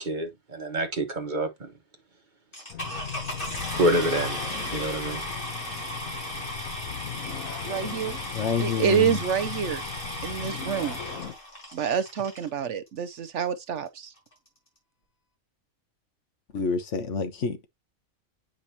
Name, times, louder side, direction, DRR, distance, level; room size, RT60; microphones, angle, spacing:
voice 1, 0.0-1.7 3.7-4.4 4.7-5.2, right 1 dB, 35° right, 1.2 m, -27 dB
sound 1, 2.5-12.5 13.3-13.4 13.9-14.0 14.2-14.5, equal, 40° left, 4.7 m, -36 dB
sound 2, 2.7-11.3, left 8 dB, 75° left, 1.4 m, -38 dB
voice 2, 7.6-8.2 8.6-9.8 10.2-11.0 11.7-14.1, right 7 dB, 65° right, 0.9 m, -27 dB
voice 3, 8.3-9.2 16.5-17.7, left 5 dB, 60° left, 1.3 m, -28 dB
8.6 x 5.2 x 2.8 m
omnidirectional pair, 1.4 m